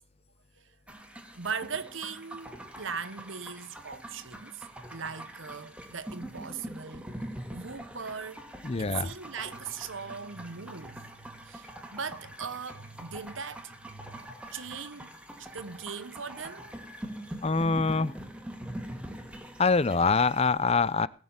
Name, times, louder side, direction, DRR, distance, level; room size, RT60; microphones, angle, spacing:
sound 1, 0.9-20.5, right 1 dB, 5° right, 2.0 m, -44 dB
voice 1, 1.3-7.1 7.5-8.5 8.8-14.2 14.5-15.1 15.4-16.7, right 6 dB, 75° right, 1.2 m, -39 dB
voice 2, 8.6-9.1 17.4-18.1 19.6-21.1, left 4 dB, 30° left, 0.6 m, -24 dB
18.5 x 6.5 x 8.8 m
head